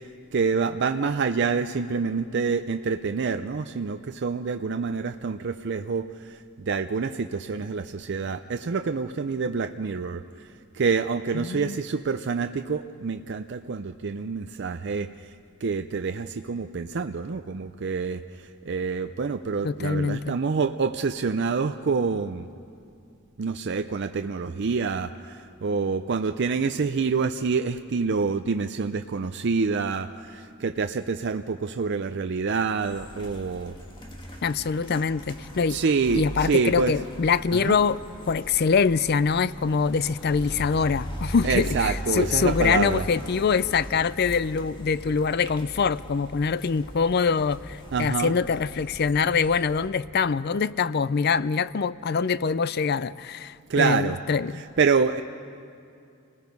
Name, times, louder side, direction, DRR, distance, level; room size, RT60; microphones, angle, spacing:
voice 1, 0.3-10.2 10.7-15.1 15.6-18.2 18.7-22.5 23.4-33.8 35.7-36.9 37.5-37.7 41.4-43.0 47.9-48.3 53.7-54.2 54.5-55.2, right 5 dB, 60° right, 8 dB, 0.5 m, -27 dB
voice 2, 11.3-11.8 19.6-20.4 34.4-35.8 36.1-38.0 38.3-54.6, left 5 dB, 50° left, 17 dB, 0.5 m, -24 dB
sound 1, 32.8-49.9, equal, 25° left, 2.1 m, -39 dB
28.5 x 19.5 x 5.3 m, 2.5 s
head